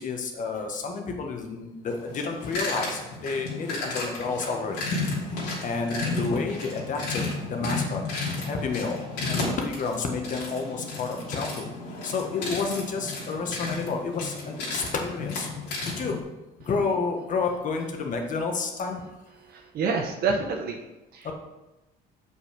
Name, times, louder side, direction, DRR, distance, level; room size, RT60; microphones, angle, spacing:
voice 1, 0.0-4.8 5.3-8.0 8.3-9.0 9.3-11.6 12.0-15.5 15.9-16.2 16.6-19.0 21.2-21.3, left 4 dB, 50° left, 3 dB, 1.5 m, -30 dB
sound 1, 1.9-16.2, left 3 dB, 90° left, 2.9 m, -33 dB
voice 2, 19.5-20.8 21.1-21.3, right 4 dB, 65° right, 2 dB, 1.1 m, -28 dB
6.9 x 5.6 x 5.2 m, 1.0 s
cardioid pair, 110°, 17 cm